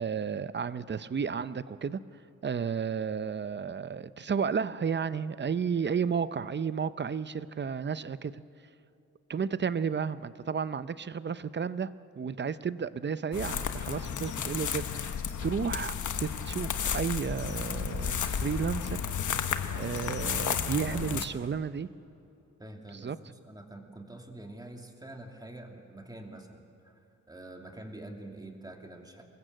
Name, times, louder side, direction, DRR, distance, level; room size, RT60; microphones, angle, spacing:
voice 1, 0.0-2.0 2.4-8.4 9.3-19.0 19.8-21.9 22.9-23.2, right 6 dB, 35° right, 14 dB, 0.7 m, -32 dB
sound 1, 13.3-21.2, left 7 dB, 75° left, 1.3 m, -33 dB
voice 2, 20.9-21.7 22.6-27.0 27.3-29.2, right 1 dB, 15° right, 2 dB, 2.6 m, -46 dB
25.0 x 21.0 x 7.8 m, 2.7 s
wide cardioid pair, 130°, 31 cm